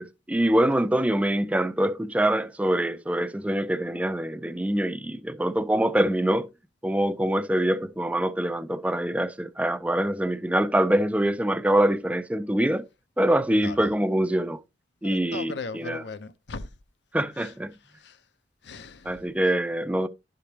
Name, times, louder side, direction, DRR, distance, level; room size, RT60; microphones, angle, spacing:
voice 1, 0.0-6.5 6.8-12.9 13.2-14.6 15.0-16.0 17.1-17.7 19.0-20.1, right 1 dB, 10° right, 0.4 m, -24 dB
voice 2, 13.5-13.9 15.0-16.7 17.4-17.5 17.9-18.2 18.6-19.2, left 3 dB, 70° left, 0.7 m, -38 dB
11.5 x 5.1 x 2.8 m
head